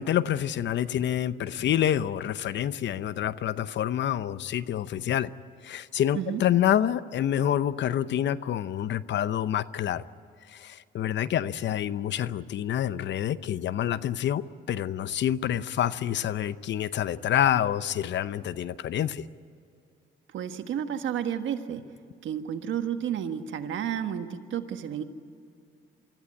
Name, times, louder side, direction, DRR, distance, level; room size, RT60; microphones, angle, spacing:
voice 1, 0.0-5.3 5.6-10.0 10.5-19.2, left 10 dB, 65° left, 16 dB, 0.8 m, -27 dB
voice 2, 20.3-21.9 22.2-25.0, right 9 dB, 75° right, 8 dB, 1.5 m, -31 dB
25.0 x 14.5 x 9.7 m, 2.5 s
cardioid pair, 90°, 20 cm